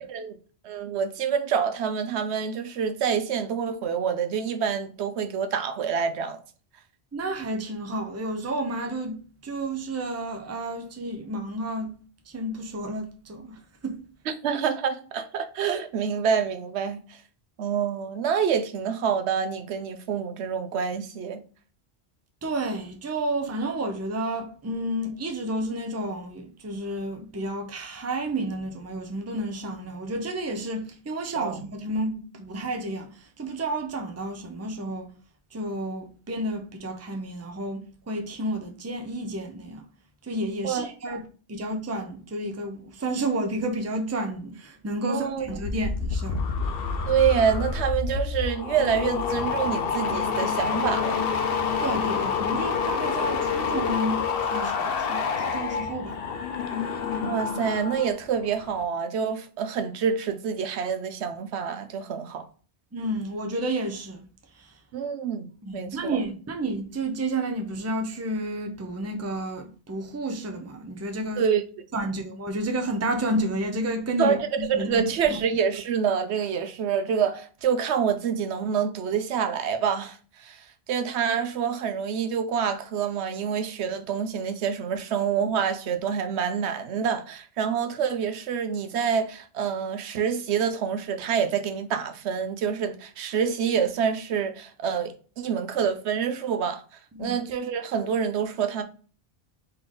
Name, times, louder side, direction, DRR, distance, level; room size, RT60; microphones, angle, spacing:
voice 1, 0.6-6.4 14.3-17.2 17.6-21.4 31.4-31.6 40.6-41.2 45.1-45.4 47.1-51.3 57.2-62.5 64.9-65.5 65.7-66.2 71.4-71.6 74.2-96.8 97.2-98.8, right 7 dB, 85° right, 0.9 m, -27 dB
voice 2, 7.1-12.0 12.3-14.0 22.4-35.1 35.5-39.8 40.2-41.2 41.5-46.4 51.8-56.2 62.9-64.2 64.6-64.7 65.6-71.4 71.9-75.4 97.1-97.4, right 1 dB, 20° right, 0.5 m, -31 dB
sound 1, 45.4-58.1 58.4-58.8, left 5 dB, 65° left, 0.8 m, -28 dB
3.9 x 3.3 x 3.7 m
omnidirectional pair, 1.1 m